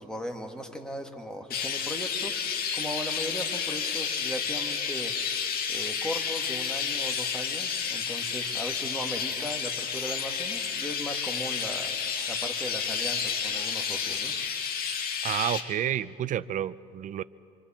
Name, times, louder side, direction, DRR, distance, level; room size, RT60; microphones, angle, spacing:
voice 1, 0.0-14.4, equal, 5° left, 3 dB, 2.0 m, -38 dB
Chirp tweet, 1.5-15.6, left 6 dB, 65° left, 1.8 m, -31 dB
voice 2, 15.2-17.2, right 11 dB, 50° right, 16 dB, 0.5 m, -30 dB
26.5 x 24.0 x 4.4 m, 2.6 s
cardioid pair, 110°, 17 cm